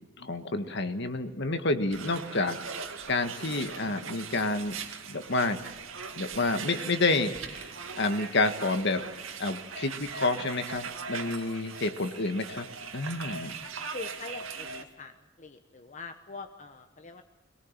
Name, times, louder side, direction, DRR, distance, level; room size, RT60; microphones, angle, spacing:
voice 1, 0.2-2.6 3.1-4.8 5.1-5.6 6.1-9.0 9.4-12.7 12.9-13.6, left 2 dB, 60° left, 8 dB, 1.8 m, -29 dB
sound 1, 1.9-14.8, right 5 dB, 85° right, 2.3 m, -40 dB
voice 2, 13.9-17.2, left 3 dB, 40° left, 6 dB, 1.1 m, -43 dB
23.0 x 18.5 x 7.5 m, 1.1 s
head